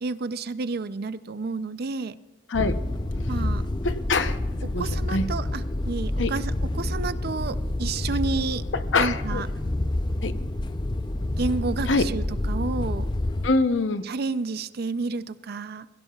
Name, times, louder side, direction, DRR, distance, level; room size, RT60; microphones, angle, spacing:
voice 1, 0.0-2.2 3.3-3.6 4.6-8.6 9.0-9.5 11.4-13.1 14.0-15.9, right 4 dB, 55° right, 14 dB, 0.5 m, -30 dB
sound 1, 2.5-13.5, left 1 dB, 25° left, 0.5 m, -28 dB
sound 2, 2.6-10.5, right 1 dB, 10° right, 3.3 m, -43 dB
voice 2, 3.8-4.4 4.7-5.3 6.2-6.3 8.7-9.4 10.2-10.3 11.9-12.1 13.4-14.0, left 3 dB, 70° left, 10 dB, 0.8 m, -24 dB
22.0 x 16.0 x 2.4 m, 1.2 s
head